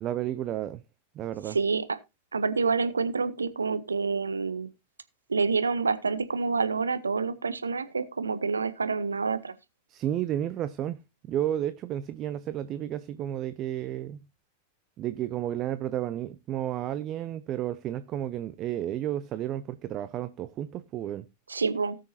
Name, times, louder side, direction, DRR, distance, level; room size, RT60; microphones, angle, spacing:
voice 1, 0.0-0.8 1.2-1.6 9.9-11.0 11.3-14.2 15.0-21.3, right 11 dB, 35° right, 0.5 m, -32 dB
voice 2, 1.5-2.0 2.3-4.7 5.3-9.6 21.5-22.0, right 4 dB, 75° right, 0.8 m, -28 dB
18.0 x 6.5 x 2.7 m
figure-of-eight pair, 90°, 0 cm